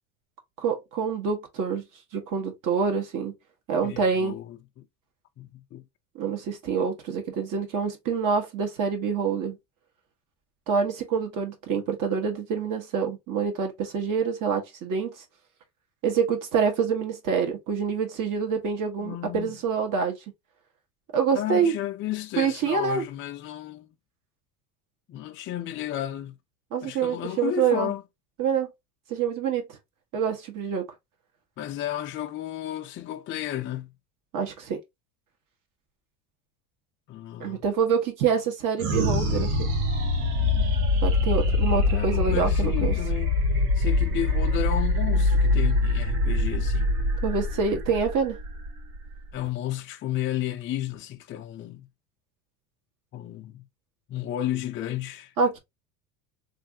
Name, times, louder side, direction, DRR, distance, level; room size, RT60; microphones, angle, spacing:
voice 1, 0.6-1.8 2.1-3.3 3.7-4.4 6.1-9.6 10.7-15.1 16.0-20.2 21.1-21.7 22.4-23.0 26.7-27.9 28.4-28.7 29.1-29.6 30.1-30.9 34.3-34.8 37.4-39.7 41.0-42.9 47.2-48.4 55.4-55.6, right 6 dB, 45° right, 1.3 m, -26 dB
voice 2, 3.8-4.8 5.4-5.9 19.0-19.6 21.3-23.9 25.1-26.4 26.8-28.0 31.6-33.9 37.1-37.6 41.9-43.4 43.7-46.9 49.3-51.9 53.1-53.7 54.1-55.3, left 12 dB, 30° left, 0.4 m, -33 dB
sound 1, 38.8-49.5, left 2 dB, 80° right, 1.4 m, -24 dB
3.2 x 2.5 x 2.7 m
supercardioid pair, 100°, 44 cm